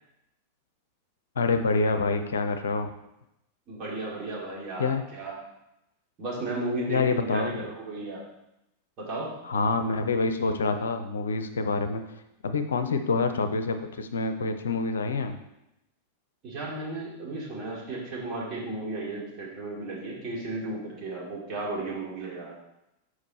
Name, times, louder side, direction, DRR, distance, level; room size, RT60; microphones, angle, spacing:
voice 1, 1.4-2.9 4.8-5.0 6.9-7.7 9.4-12.0 12.4-15.4, left 4 dB, 65° left, 8 dB, 0.5 m, -27 dB
voice 2, 3.7-5.4 6.2-8.2 9.0-9.4 16.4-22.6, right 2 dB, 35° right, -4 dB, 2.5 m, -34 dB
7.2 x 4.8 x 4.2 m, 0.87 s
figure-of-eight pair, 90°, 0 cm